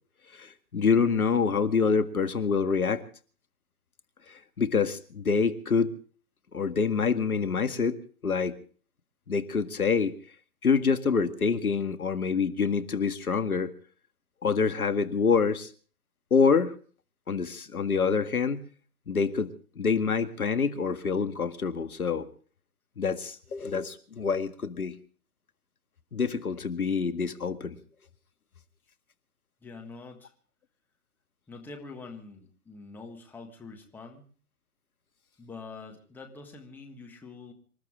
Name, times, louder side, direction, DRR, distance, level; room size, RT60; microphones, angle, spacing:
voice 1, 0.4-3.0 4.6-5.9 6.5-8.0 8.2-8.6 9.3-10.1 10.6-13.7 14.4-15.7 16.3-16.7 17.3-18.6 19.1-19.5 19.8-22.3 23.0-25.0 26.1-27.8, left 5 dB, 70° left, 9 dB, 2.0 m, -26 dB
voice 2, 29.6-30.3 31.5-34.3 35.4-37.5, left 3 dB, 5° left, 2 dB, 1.5 m, -45 dB
26.5 x 13.5 x 3.6 m, 0.43 s
figure-of-eight pair, 140°, 45 cm